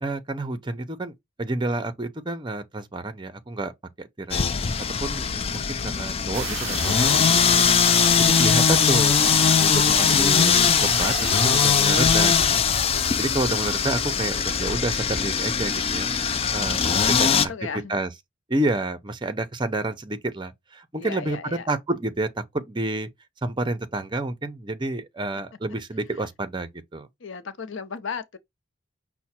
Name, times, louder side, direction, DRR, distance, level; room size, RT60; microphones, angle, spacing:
voice 1, 0.0-1.1 1.4-3.7 4.0-4.4 5.0-7.7 8.2-9.1 9.5-12.6 13.2-16.1 16.5-18.1 18.5-23.1 23.4-27.1, right 2 dB, 25° right, 0.6 m, -29 dB
sound 1, 4.3-17.5, left 7 dB, 30° left, 0.4 m, -21 dB
sound 2, 6.3-12.4, right 11 dB, 75° right, 0.3 m, -33 dB
voice 2, 11.3-12.5 16.4-17.9 21.0-21.7 27.2-28.4, left 5 dB, 70° left, 0.7 m, -36 dB
5.7 x 2.2 x 4.2 m
head